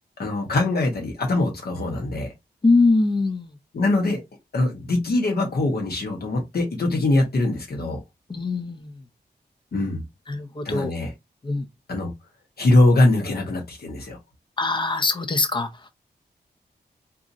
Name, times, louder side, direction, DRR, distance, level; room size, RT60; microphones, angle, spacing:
voice 1, 0.2-2.3 3.7-4.2 4.5-8.0 9.7-10.0 10.6-11.1 11.9-12.1 12.6-14.2, left 2 dB, 65° left, 1.0 m, -22 dB
voice 2, 2.6-3.6 8.3-9.0 10.3-10.9 11.4-11.7 14.6-15.9, left 3 dB, 25° left, 0.6 m, -22 dB
4.0 x 2.5 x 2.6 m
wide cardioid pair, 125°, 17 cm